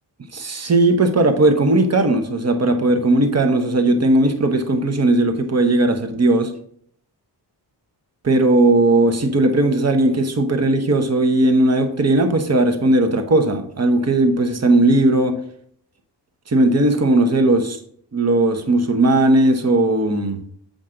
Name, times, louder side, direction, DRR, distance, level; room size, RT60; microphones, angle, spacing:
voice 1, 0.3-6.5 8.2-15.3 16.5-17.8 18.1-20.4, right 2 dB, 35° right, 5 dB, 1.1 m, -17 dB
7.7 x 5.2 x 3.8 m, 0.64 s
cardioid pair, 90°, 44 cm